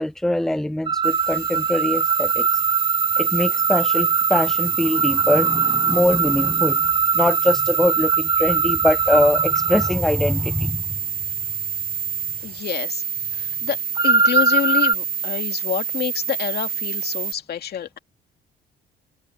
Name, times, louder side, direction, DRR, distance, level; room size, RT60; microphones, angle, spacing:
voice 1, 0.0-2.6 3.2-10.8, left 1 dB, ahead, 0.4 m, -22 dB
sound 1, 0.9-9.9 14.0-14.9, right 5 dB, 25° right, 1.1 m, -22 dB
sound 2, 1.0-17.3, right 8 dB, 50° right, 2.5 m, -27 dB
voice 2, 12.4-13.0 13.3-18.0, left 9 dB, 55° left, 2.5 m, -28 dB
supercardioid pair, 80°, 19 cm